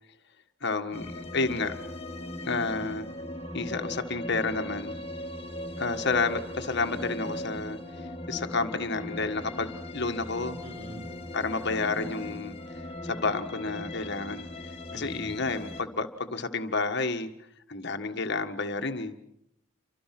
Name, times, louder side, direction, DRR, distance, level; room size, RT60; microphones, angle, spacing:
voice 1, 0.6-1.8 2.4-3.1 3.5-5.0 5.8-10.6 11.3-12.5 13.0-14.5 14.9-17.3 17.7-19.1, left 3 dB, 50° left, 6 dB, 1.7 m, -30 dB
sound 1, 0.9-15.8, left 1 dB, 25° left, 2.1 m, -39 dB
voice 2, 2.5-3.1 10.6-11.1 14.9-15.4, right 1 dB, 50° right, 4 dB, 6.5 m, -44 dB
30.0 x 25.5 x 6.0 m, 0.77 s
head